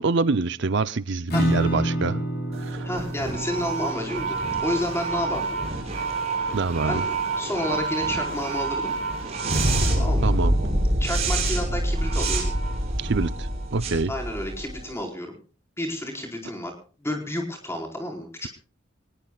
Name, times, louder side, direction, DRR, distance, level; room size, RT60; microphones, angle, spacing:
voice 1, 0.0-2.2 2.6-2.8 6.5-7.0 10.2-10.6 13.0-14.1, right 3 dB, 60° right, 14 dB, 0.6 m, -25 dB
Acoustic guitar / Strum, 1.3-6.7, right 1 dB, 50° left, 4.7 m, -29 dB
sound 1, 2.5-14.9, right 2 dB, 30° right, 6.9 m, -26 dB
voice 2, 2.8-5.6 6.8-7.0 7.4-8.9 10.0-10.4 11.0-12.4 14.1-15.3 15.8-16.7 17.0-18.5, left 1 dB, 15° left, 2 dB, 4.7 m, -30 dB
24.0 x 20.0 x 2.4 m, 0.39 s
head